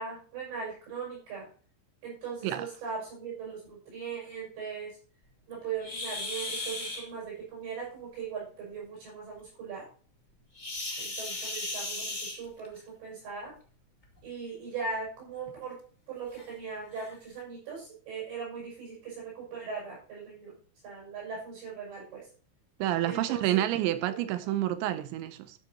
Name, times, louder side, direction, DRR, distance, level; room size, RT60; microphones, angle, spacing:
voice 1, 0.0-1.5 2.0-5.0 5.5-9.9 11.0-13.6 14.2-15.8 16.1-20.6 20.8-22.3 23.0-23.6 24.1-24.5, right 5 dB, 65° right, 7.8 m, -39 dB
sound 1, 5.8-7.0 10.5-12.8 14.0-14.2 14.8-14.9 15.4-15.5 16.3-16.4 16.9-17.1, left 2 dB, 25° left, 0.9 m, -36 dB
voice 2, 22.8-25.5, right 13 dB, 80° right, 2.7 m, -29 dB
13.0 x 10.5 x 2.8 m
omnidirectional pair, 5.7 m